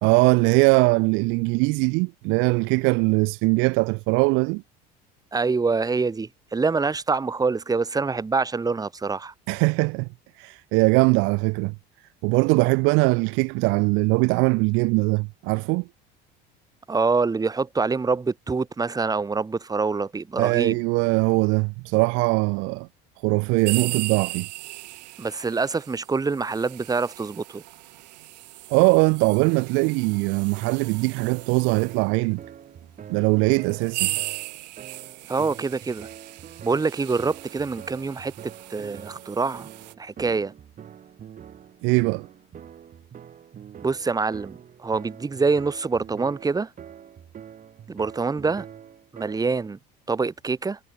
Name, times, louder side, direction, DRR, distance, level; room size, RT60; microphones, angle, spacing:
voice 1, 0.0-4.6 9.5-10.1 10.4-11.8 12.2-15.9 20.4-22.9 23.2-24.5 28.7-32.4 33.1-34.1 41.8-42.3, right 29 dB, 70° right, 0.6 m, -21 dB
voice 2, 5.3-9.3 16.9-20.8 25.2-27.6 35.3-36.1 36.6-39.7 40.0-40.5 43.8-46.7 47.9-48.7 49.1-49.8 50.1-50.8, right 4 dB, 15° right, 1.5 m, -25 dB
sound 1, 23.6-32.0 32.8-32.9 33.6-39.9, right 19 dB, 90° right, 8.0 m, -37 dB
sound 2, 30.6-49.7, right 9 dB, 40° right, 3.9 m, -45 dB
supercardioid pair, 95°, 21 cm